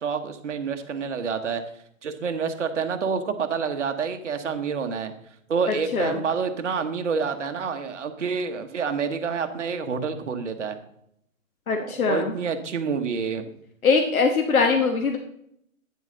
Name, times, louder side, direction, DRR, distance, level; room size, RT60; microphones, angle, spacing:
voice 1, 0.0-1.6 2.0-5.1 5.5-10.8 11.8-13.5, right 5 dB, 60° right, 7 dB, 1.2 m, -28 dB
voice 2, 11.7-12.3 13.8-15.2, left 4 dB, 85° left, 4 dB, 1.3 m, -21 dB
9.6 x 7.2 x 3.8 m, 0.72 s
hypercardioid pair, 170°, 41 cm